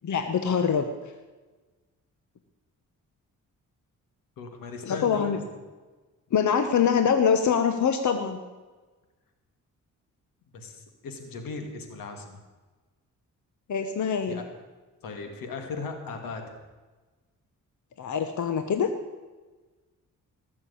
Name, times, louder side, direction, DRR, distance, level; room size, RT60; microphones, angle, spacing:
voice 1, 0.0-0.8 4.8-5.4 6.3-8.4 13.7-14.4 18.0-18.9, left 7 dB, 60° left, 8 dB, 1.2 m, -24 dB
voice 2, 4.4-5.4 10.5-12.4 14.3-14.4 15.0-16.4, left 4 dB, 90° left, 5 dB, 2.4 m, -37 dB
18.5 x 7.1 x 8.5 m, 1.3 s
cardioid pair, 75°, 33 cm